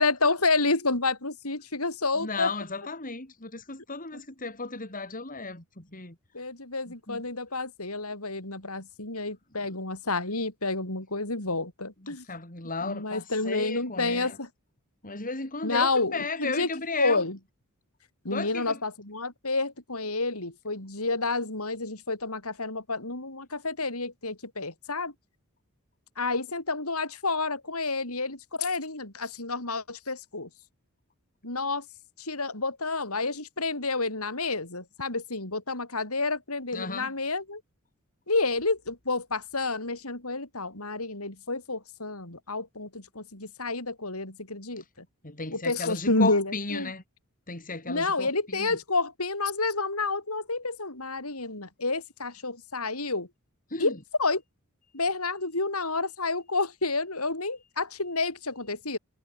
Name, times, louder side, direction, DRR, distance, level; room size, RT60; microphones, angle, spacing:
voice 1, 0.0-2.5 6.3-12.3 12.8-14.5 15.6-16.7 17.0-17.4 18.2-25.1 26.2-30.5 31.4-31.9 32.2-37.6 38.3-45.1 45.5-46.9 47.9-53.3 53.8-54.4 54.9-59.0, left 3 dB, 80° left, 7.0 m, -29 dB
voice 2, 2.2-6.2 6.9-7.2 12.0-14.4 15.0-17.2 18.3-18.8 36.7-37.1 45.2-47.0 47.5-48.8 53.7-54.0, left 3 dB, 40° left, 4.6 m, -35 dB
head